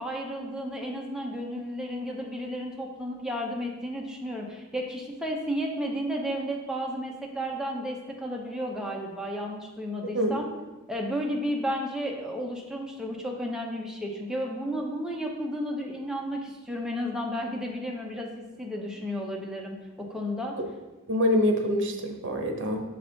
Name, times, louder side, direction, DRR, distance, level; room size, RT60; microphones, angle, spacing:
voice 1, 0.0-10.5 10.9-20.5, equal, 5° right, -1 dB, 0.8 m, -33 dB
voice 2, 21.1-22.8, left 1 dB, 60° right, 4 dB, 0.9 m, -25 dB
6.8 x 4.0 x 3.9 m, 1.1 s
head